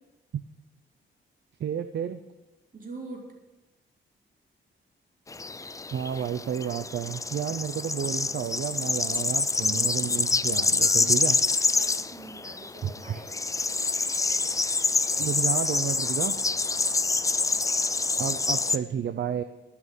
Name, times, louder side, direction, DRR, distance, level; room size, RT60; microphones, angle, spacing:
voice 1, 1.6-2.2 5.9-11.4 12.8-13.2 15.2-16.3 18.2-19.4, right 8 dB, 60° right, 9 dB, 0.7 m, -31 dB
voice 2, 2.7-3.2 10.8-11.2 11.5-13.3, right 3 dB, 45° right, 0 dB, 3.3 m, -44 dB
sound 1, 5.3-18.8, left 3 dB, 15° left, 0.4 m, -26 dB
13.0 x 6.1 x 9.3 m, 1.0 s
cardioid pair, 105°, 20 cm